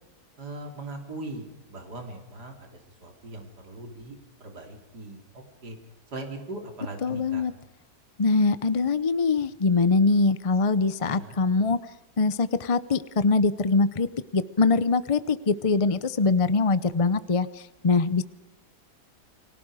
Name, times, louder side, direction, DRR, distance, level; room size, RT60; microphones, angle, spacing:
voice 1, 0.4-5.2 5.6-5.8 6.1-7.4 11.0-11.4, right 2 dB, 80° right, 3 dB, 4.0 m, -40 dB
voice 2, 7.0-7.5 8.2-11.8 12.2-14.1 14.3-18.2, left 4 dB, 40° left, 14 dB, 0.4 m, -23 dB
30.0 x 20.5 x 4.9 m, 0.94 s
omnidirectional pair, 1.7 m